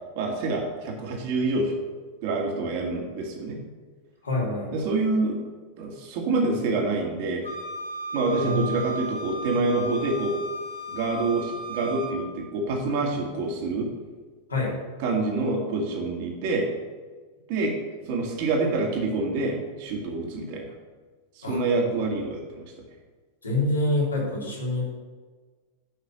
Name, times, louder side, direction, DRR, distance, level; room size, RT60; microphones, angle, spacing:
voice 1, 0.2-1.8 2.2-3.6 4.7-5.4 5.8-7.4 8.1-10.3 10.9-13.9 15.0-16.7 17.5-17.7 18.1-20.7 21.4-22.6, right 3 dB, 50° right, 1 dB, 2.2 m, -27 dB
voice 2, 4.2-4.7 8.4-8.6 14.5-14.8 21.4-21.6 23.4-24.8, left 2 dB, 75° left, -5 dB, 3.5 m, -26 dB
Wind instrument woodwind instrument, 7.4-12.2, right 1 dB, 90° right, 2.3 m, -35 dB
10.0 x 6.1 x 6.2 m, 1.4 s
figure-of-eight pair, 90°, 0 cm